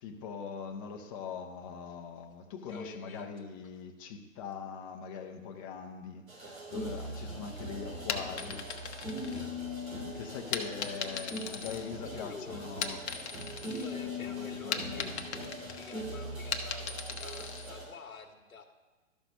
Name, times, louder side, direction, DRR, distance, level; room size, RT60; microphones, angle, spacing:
voice 1, 0.0-8.6 10.1-13.0 14.0-15.5, left 6 dB, 25° left, 3 dB, 0.7 m, -42 dB
voice 2, 2.7-3.3 10.5-10.7 12.0-12.7 13.6-15.2 15.7-18.7, left 4 dB, 90° left, 6 dB, 1.3 m, -48 dB
sound 1, 6.3-17.8, left 1 dB, 80° right, 3.5 m, -41 dB
sound 2, 8.1-9.9 10.5-12.3 12.7-14.0 14.3-17.7, left 6 dB, 55° left, 0.9 m, -38 dB
12.5 x 5.9 x 5.3 m, 1.3 s
hypercardioid pair, 135°, 40 cm